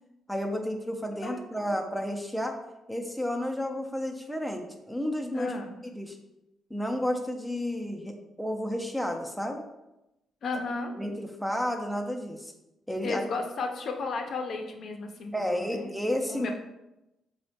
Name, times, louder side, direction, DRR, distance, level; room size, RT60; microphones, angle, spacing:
voice 1, 0.3-2.6 2.9-5.5 5.9-6.2 6.7-9.7 11.0-12.5 12.9-13.2 15.3-16.5, equal, ahead, 2 dB, 0.4 m, -31 dB
voice 2, 1.2-1.8 5.3-5.8 10.4-10.9 13.0-15.9 16.3-16.5, left 3 dB, 60° left, 3 dB, 0.5 m, -34 dB
4.2 x 2.1 x 2.7 m, 0.92 s
cardioid pair, 90°, 0 cm